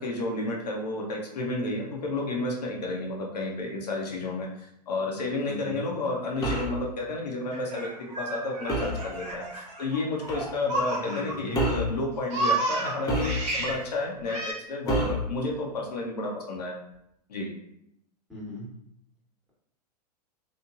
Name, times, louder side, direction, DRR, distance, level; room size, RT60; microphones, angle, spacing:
voice 1, 0.0-7.9 8.2-16.8 17.3-17.5, left 2 dB, 70° left, -1 dB, 0.6 m, -31 dB
voice 2, 5.4-5.8 11.0-11.6 18.3-18.7, left 2 dB, 5° right, -7 dB, 1.1 m, -37 dB
sound 1, 6.4-6.8 8.7-9.0 10.3-10.5 11.5-12.0 13.1-13.7 14.9-15.3, equal, 15° left, 0.6 m, -28 dB
Laughter, 7.5-11.6 11.9-13.8 14.3-14.5, right 2 dB, 30° right, 0.7 m, -31 dB
3.0 x 2.1 x 2.4 m, 0.77 s
figure-of-eight pair, 100°, 21 cm